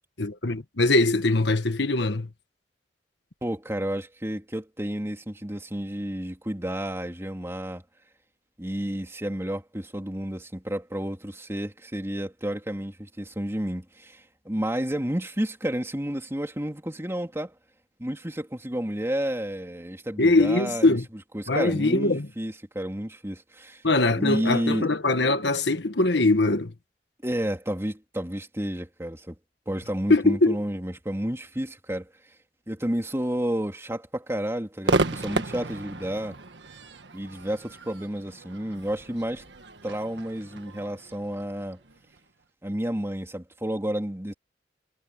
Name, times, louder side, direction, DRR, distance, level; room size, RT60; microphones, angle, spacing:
voice 1, 0.2-2.3 20.2-21.0 21.5-22.3 23.8-26.7 30.1-30.6, left 2 dB, 70° left, 1.5 m, -22 dB
voice 2, 3.4-7.8 8.6-17.5 18.0-21.0 21.3-23.8 24.1-24.9 27.2-29.3 29.7-32.1 32.7-36.4 37.1-39.4 39.8-41.8 42.6-44.3, equal, 15° right, 3.1 m, -31 dB
Crowd / Fireworks, 34.8-42.2, right 2 dB, 75° right, 1.6 m, -32 dB
head